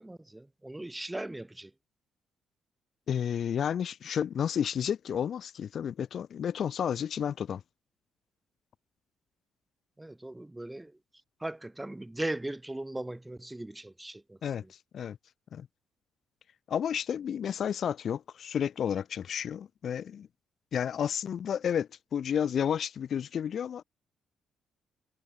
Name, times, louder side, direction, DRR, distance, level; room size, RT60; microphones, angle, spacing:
voice 1, 0.0-1.7 10.0-11.0 11.4-14.7, right 1 dB, 10° right, 1.6 m, -38 dB
voice 2, 3.1-7.6 14.4-15.2 15.5-15.7 16.7-20.3 20.7-23.8, left 8 dB, 60° left, 0.4 m, -31 dB
cardioid pair, 90°, 0 cm